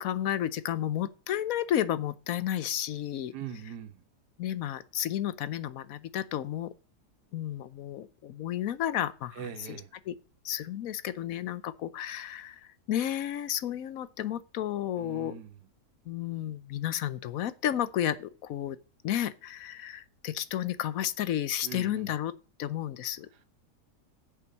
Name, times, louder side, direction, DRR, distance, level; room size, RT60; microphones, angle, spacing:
voice 1, 0.0-3.3 4.4-6.7 7.3-9.8 10.1-10.2 10.4-15.4 16.1-18.8 19.0-22.3 22.6-23.4, left 11 dB, 65° left, 1.0 m, -32 dB
voice 2, 3.3-4.0 9.3-9.9 15.0-15.5 21.6-22.1, right 7 dB, 80° right, 1.6 m, -41 dB
8.6 x 7.3 x 5.3 m
omnidirectional pair, 1.8 m